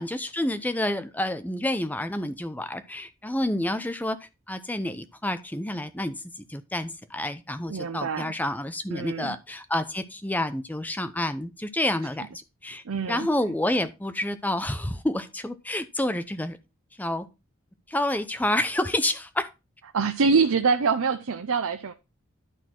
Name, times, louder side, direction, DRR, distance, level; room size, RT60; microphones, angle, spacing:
voice 1, 0.0-4.2 4.5-12.8 13.1-16.6 17.0-17.3 17.9-19.5, left 1 dB, 10° left, 0.6 m, -29 dB
voice 2, 7.7-8.3 8.9-9.4 12.9-13.3 19.9-21.9, right 5 dB, 85° right, 0.6 m, -25 dB
11.5 x 4.2 x 4.4 m
head